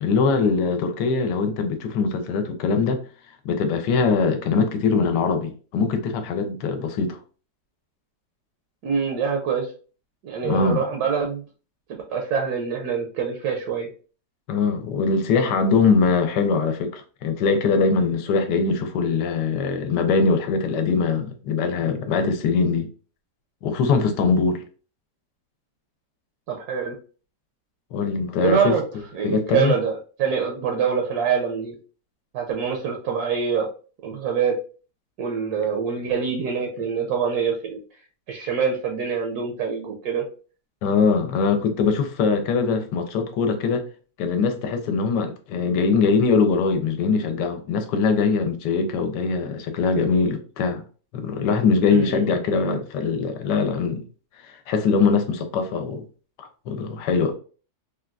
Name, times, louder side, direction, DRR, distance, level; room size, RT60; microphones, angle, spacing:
voice 1, 0.0-3.0 3.4-7.2 10.4-10.8 14.5-22.9 23.6-24.6 27.9-28.8 29.2-29.8 40.8-43.9 44.2-50.8 51.1-54.0 54.4-56.0 56.4-57.4, left 5 dB, 80° left, 1.2 m, -22 dB
voice 2, 8.8-9.7 10.2-11.4 12.1-13.9 26.5-26.9 28.4-28.8 29.1-31.7 32.3-33.7 34.0-34.5 35.2-37.8 38.3-40.2 51.9-52.3, right 6 dB, 70° right, 1.0 m, -25 dB
3.6 x 2.3 x 2.3 m
omnidirectional pair, 1.8 m